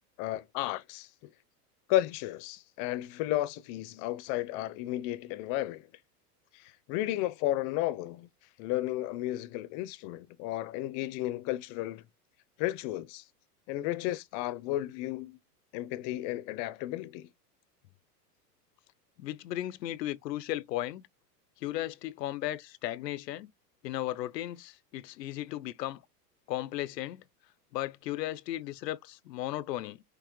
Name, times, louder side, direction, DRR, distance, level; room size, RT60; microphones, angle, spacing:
voice 1, 0.2-1.1 1.9-5.9 6.5-8.3 8.6-12.1 12.6-13.2 13.7-15.4 15.7-17.3, left 15 dB, 40° left, 0.6 m, -33 dB
voice 2, 19.2-21.0 21.6-23.5 23.8-26.0 26.5-27.2 27.7-30.0, left 14 dB, 90° left, 0.6 m, -35 dB
5.9 x 2.9 x 3.0 m
hypercardioid pair, 120°, 48 cm